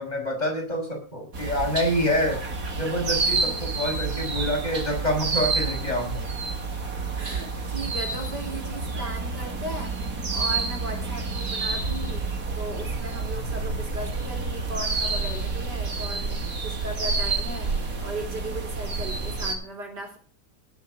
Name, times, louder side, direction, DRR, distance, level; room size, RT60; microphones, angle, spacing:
voice 1, 0.0-2.4 2.8-6.2, equal, 25° left, 0 dB, 6.0 m, -27 dB
sound 1, 1.3-19.6, right 3 dB, 55° right, 2.6 m, -29 dB
voice 2, 3.5-4.0 7.1-12.2 12.5-17.7 18.0-20.2, right 1 dB, 80° right, 3 dB, 4.9 m, -37 dB
18.5 x 8.2 x 6.6 m, 0.39 s
omnidirectional pair, 1.8 m